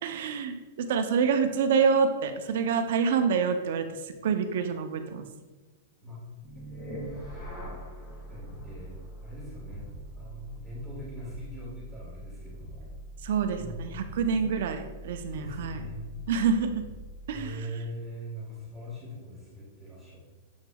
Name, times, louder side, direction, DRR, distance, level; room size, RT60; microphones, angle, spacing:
voice 1, 0.0-3.9 4.2-5.2 13.2-15.8 16.3-16.8 17.3-17.6, right 6 dB, 60° right, 8 dB, 0.4 m, -27 dB
sound 1, 6.4-17.6, right 1 dB, 20° left, 1.1 m, -43 dB
voice 2, 6.5-7.2 8.3-12.9 13.5-13.9 14.3-14.4 15.3-16.1 17.3-20.2, equal, 5° right, -9 dB, 1.3 m, -42 dB
7.0 x 3.4 x 2.2 m, 1.2 s
supercardioid pair, 170°, 0 cm